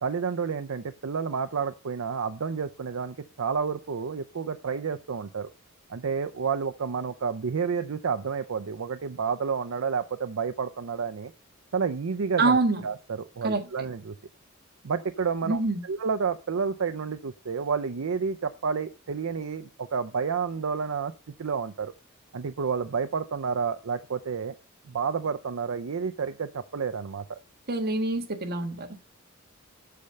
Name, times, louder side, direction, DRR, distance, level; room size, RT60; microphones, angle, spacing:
voice 1, 0.0-5.5 5.9-11.3 11.7-14.1 14.8-21.1 21.4-21.9 22.3-24.5 24.9-27.4, right 5 dB, 80° right, 9 dB, 0.5 m, -30 dB
voice 2, 12.4-12.8 13.4-13.6 15.4-15.8 27.7-29.0, right 3 dB, 50° right, 5 dB, 1.5 m, -25 dB
8.5 x 6.9 x 6.5 m, 0.36 s
head